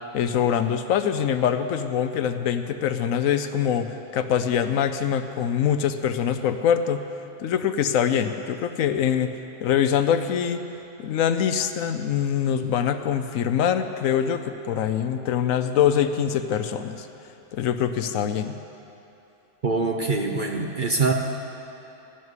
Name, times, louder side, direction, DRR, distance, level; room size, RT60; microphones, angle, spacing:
voice 1, 0.1-7.0 7.4-9.3 9.6-10.6 11.0-17.1 17.5-18.6, left 8 dB, 70° left, 9 dB, 1.0 m, -24 dB
voice 2, 19.6-21.1, right 3 dB, 45° right, 2 dB, 0.8 m, -24 dB
14.0 x 6.4 x 9.5 m, 3.0 s
omnidirectional pair, 1.5 m